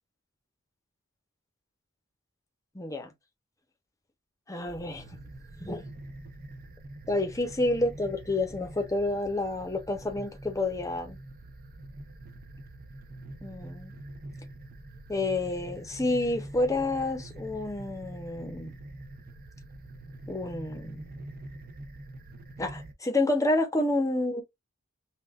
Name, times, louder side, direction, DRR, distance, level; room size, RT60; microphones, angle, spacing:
voice 1, 2.7-3.1 4.5-5.0 5.6-5.8 7.1-11.2 13.4-13.9 15.1-18.7 20.3-21.1 22.6-24.4, left 2 dB, 15° left, 0.9 m, -29 dB
sound 1, 4.6-22.9, right 1 dB, 45° right, 0.9 m, -45 dB
5.6 x 2.5 x 2.4 m
head